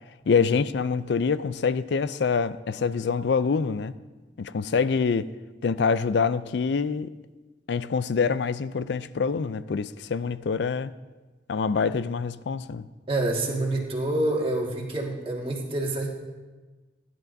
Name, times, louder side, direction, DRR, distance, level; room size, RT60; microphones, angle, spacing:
voice 1, 0.3-3.9 4.4-5.3 5.6-7.1 7.7-10.9 11.5-12.8, left 5 dB, 65° left, 0.4 m, -25 dB
voice 2, 13.1-16.1, right 2 dB, 30° right, 1.8 m, -27 dB
21.0 x 10.5 x 2.7 m
head